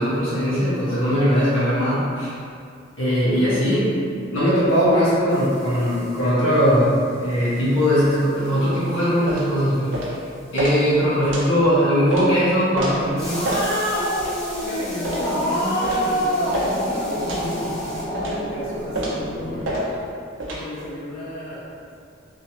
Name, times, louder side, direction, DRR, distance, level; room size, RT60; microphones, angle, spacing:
voice 1, 0.0-2.3 3.0-3.9 4.3-9.9 10.5-13.6, equal, 85° left, -10 dB, 1.4 m, -20 dB
voice 2, 3.2-3.6 14.6-17.7 18.1-20.1 20.5-21.7, left 1 dB, 50° left, -9 dB, 0.7 m, -33 dB
sound 1, 5.3-11.6 13.2-18.0, equal, 5° left, 0.7 m, -41 dB
sound 2, 9.3-9.5 9.9-10.1 10.6-10.7 11.3-11.5 12.1-12.3 12.8-12.9 13.4-13.7 14.2-14.3 15.0-15.3 15.8-16.1 16.5-16.7 17.3-17.5 18.1-18.4 18.9-19.2 19.6-19.8 20.4-20.6, right 1 dB, 65° right, 0.7 m, -28 dB
Growling, 13.2-19.7, equal, 25° left, 1.3 m, -26 dB
3.0 x 3.0 x 2.8 m, 2.3 s
head